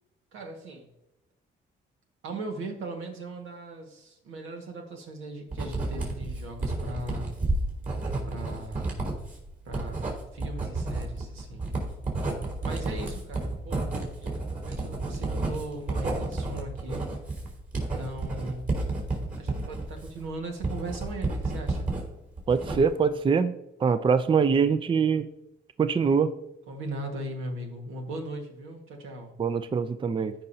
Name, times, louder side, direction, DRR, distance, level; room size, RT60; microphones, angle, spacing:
voice 1, 0.3-0.9 2.2-7.4 8.3-9.0 9.7-10.0 10.3-11.7 12.6-13.9 14.2-17.0 18.0-18.7 19.4-21.9 26.7-29.4, right 2 dB, 90° right, 2 dB, 1.7 m, -38 dB
Writing, 5.5-22.0 22.4-23.1, right 2 dB, 45° right, 3.5 m, -31 dB
voice 2, 22.5-23.5 23.8-25.3 25.8-26.3 29.4-30.3, right 5 dB, 25° right, 12 dB, 0.4 m, -23 dB
15.5 x 5.4 x 2.8 m, 0.86 s
cardioid pair, 90°, 20 cm